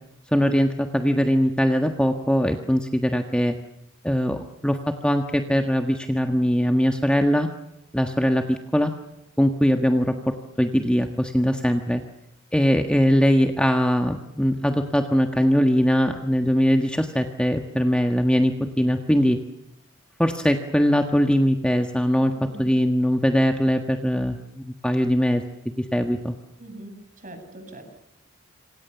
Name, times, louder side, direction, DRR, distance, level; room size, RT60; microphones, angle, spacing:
voice 1, 0.3-3.5 4.0-7.5 7.9-8.9 9.4-10.1 10.6-12.0 12.5-19.4 20.2-22.3 22.6-25.4 25.9-26.3, equal, 5° left, 5 dB, 1.5 m, -21 dB
voice 2, 22.3-22.7 26.6-27.8, right 1 dB, 40° right, 7 dB, 7.5 m, -42 dB
27.0 x 27.0 x 7.1 m, 0.84 s
head